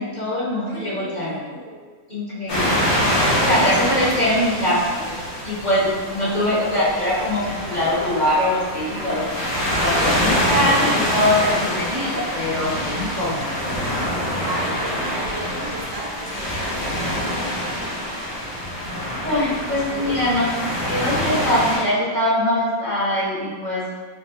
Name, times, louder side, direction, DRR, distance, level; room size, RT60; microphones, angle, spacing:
voice 1, 0.0-1.4 2.1-2.9 3.4-5.0 5.4-14.0 19.2-23.8, left 1 dB, 30° left, -10 dB, 0.9 m, -23 dB
voice 2, 0.5-1.8 5.0-5.3 5.9-7.1 7.7-7.8 9.5-10.3 10.9-11.5 14.4-17.5 19.7-20.1 20.7-21.0, right 2 dB, 80° right, -4 dB, 1.5 m, -36 dB
sound 1, 2.5-21.8, equal, 75° left, 1.9 m, -25 dB
5.1 x 2.3 x 2.7 m, 1.5 s
omnidirectional pair, 2.0 m